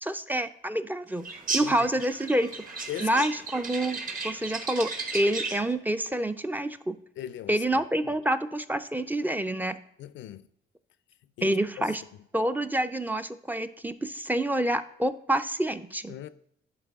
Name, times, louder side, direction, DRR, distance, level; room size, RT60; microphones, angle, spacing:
voice 1, 0.0-1.3 1.5-4.0 4.2-7.0 7.5-9.8 11.4-12.0 12.3-16.1, right 1 dB, 10° right, 0.4 m, -28 dB
sound 1, 1.2-5.7, right 3 dB, 45° right, 1.1 m, -35 dB
voice 2, 2.9-3.3 7.2-7.9 10.0-10.4 11.4-11.9 16.1-16.3, left 12 dB, 70° left, 0.4 m, -39 dB
11.0 x 4.0 x 3.4 m
cardioid pair, 90°, 20 cm